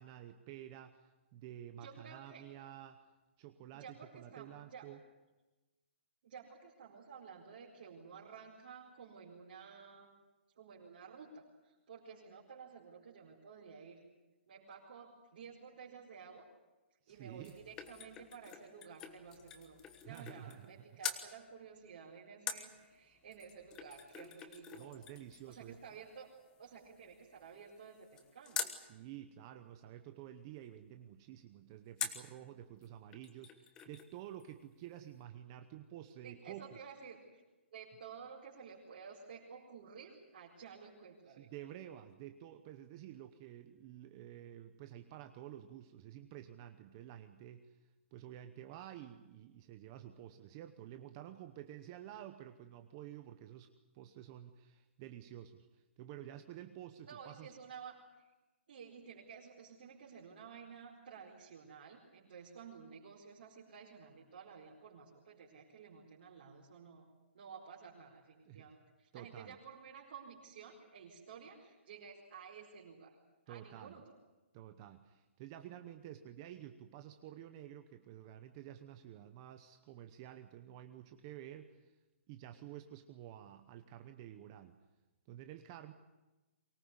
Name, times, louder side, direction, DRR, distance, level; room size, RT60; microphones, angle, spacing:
voice 1, 0.0-3.0 3.4-5.0 17.0-17.6 20.0-20.8 24.7-25.8 28.9-36.7 41.4-47.7 48.1-53.7 53.9-57.5 68.5-68.7 69.1-69.6 73.5-74.0 74.5-81.9 82.3-84.8 85.3-85.9, right 11 dB, 20° right, 8 dB, 0.9 m, -51 dB
voice 2, 1.8-2.4 3.8-4.9 6.2-10.1 10.6-14.0 14.5-16.5 17.1-25.1 25.5-26.3 26.6-28.6 36.2-37.4 37.7-41.5 57.1-58.3 58.7-67.1 67.3-73.2 73.5-74.1, right 6 dB, 45° right, -5 dB, 4.7 m, -53 dB
sound 1, 17.1-20.7 21.0-21.3 22.5-28.8 32.0-32.3 32.8-32.9 33.1-34.1 34.4-34.5, left 7 dB, 10° left, 1.2 m, -46 dB
23.5 x 18.5 x 9.6 m, 1.1 s
hypercardioid pair, 175°, 7 cm